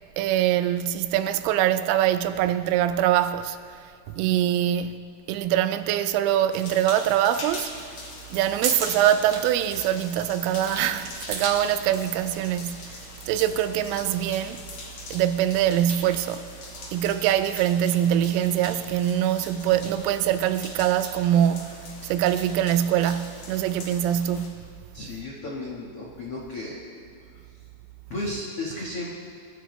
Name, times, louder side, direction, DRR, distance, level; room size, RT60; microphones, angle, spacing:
voice 1, 0.2-3.9 4.1-5.0 5.3-7.7 8.3-13.0 13.3-14.6 15.1-16.5 16.9-24.8, right 11 dB, 90° right, 3.2 m, -23 dB
sound 1, 6.5-24.5, left 3 dB, 50° left, 2.3 m, -42 dB
sound 2, 8.2-12.1, right 4 dB, 55° right, 1.8 m, -34 dB
voice 2, 24.9-26.8 27.3-27.4 28.1-29.1, left 2 dB, 75° left, 1.3 m, -34 dB
26.5 x 14.0 x 3.3 m
omnidirectional pair, 5.6 m